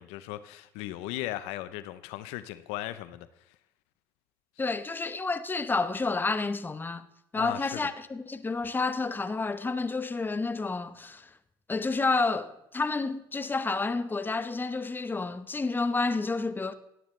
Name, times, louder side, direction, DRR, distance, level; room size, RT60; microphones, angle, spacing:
voice 1, 0.0-3.3 7.3-7.8, left 15 dB, 75° left, 0.6 m, -37 dB
voice 2, 4.6-7.0 7.3-11.3 11.7-16.7, left 3 dB, 20° left, 0.9 m, -30 dB
16.5 x 10.0 x 3.2 m
supercardioid pair, 75°, 11 cm